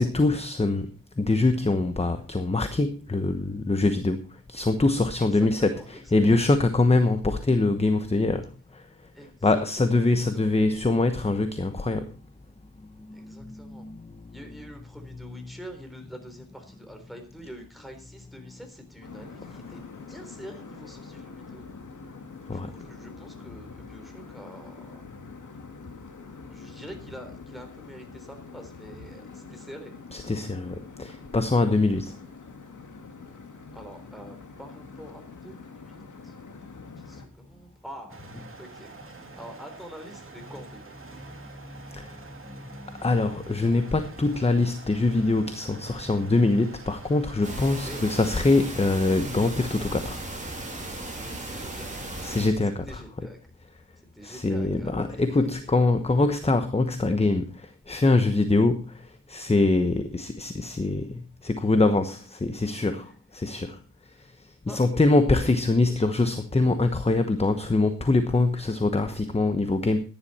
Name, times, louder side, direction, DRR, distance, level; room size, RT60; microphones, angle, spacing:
voice 1, 0.0-9.1 9.4-12.1 13.0-14.4 22.5-22.7 30.1-32.2 41.2-50.2 52.2-53.0 54.2-70.0, left 2 dB, 20° left, 9 dB, 1.0 m, -24 dB
voice 2, 5.2-6.5 9.1-10.4 13.1-13.8 14.3-21.7 22.5-24.8 26.2-29.9 33.7-36.3 37.0-38.2 38.6-39.0 39.4-41.1 47.7-48.2 51.1-52.1 52.7-53.4 54.0-55.7 64.1-64.2 64.7-64.8, equal, ahead, 5 dB, 3.7 m, -46 dB
sound 1, 19.0-37.3, left 4 dB, 60° left, 2.3 m, -45 dB
sound 2, 38.1-48.4, right 3 dB, 40° right, 2.4 m, -47 dB
sound 3, 47.4-52.5, right 2 dB, 20° right, 3.6 m, -36 dB
14.5 x 10.5 x 4.3 m, 0.37 s
wide cardioid pair, 120°, 33 cm